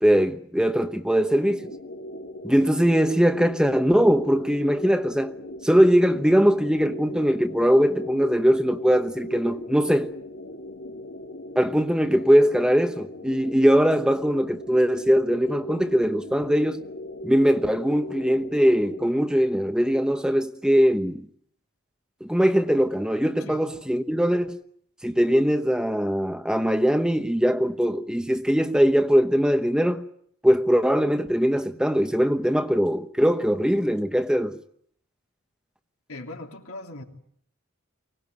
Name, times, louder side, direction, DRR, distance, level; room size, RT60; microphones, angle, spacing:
voice 1, 0.0-1.6 2.4-5.3 5.6-10.1 11.5-16.8 17.2-21.3 22.2-24.6 25.0-30.1 30.4-34.6, equal, 5° right, 1.0 m, -21 dB
sound 1, 1.4-19.1, left 1 dB, 65° left, 2.2 m, -39 dB
voice 2, 36.1-37.0, left 2 dB, 85° left, 3.3 m, -39 dB
24.0 x 18.0 x 9.5 m
head